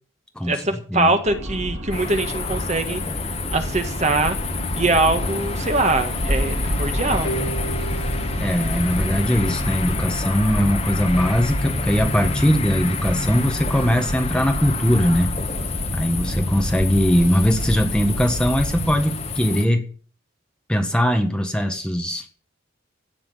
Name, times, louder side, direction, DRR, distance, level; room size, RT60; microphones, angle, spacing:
voice 1, 0.4-3.0 3.5-4.3 4.8-7.5, right 2 dB, 35° right, 7 dB, 1.6 m, -22 dB
sound 1, 1.3-19.0, equal, 90° right, 3.3 m, -29 dB
sound 2, 1.9-19.6, left 3 dB, 30° left, 1.4 m, -29 dB
sound 3, 7.2-10.0, right 3 dB, 80° left, 4.9 m, -35 dB
voice 2, 8.4-15.3 15.9-19.8 20.7-22.3, equal, 5° left, 4 dB, 1.5 m, -20 dB
17.0 x 6.2 x 7.9 m, 0.42 s
head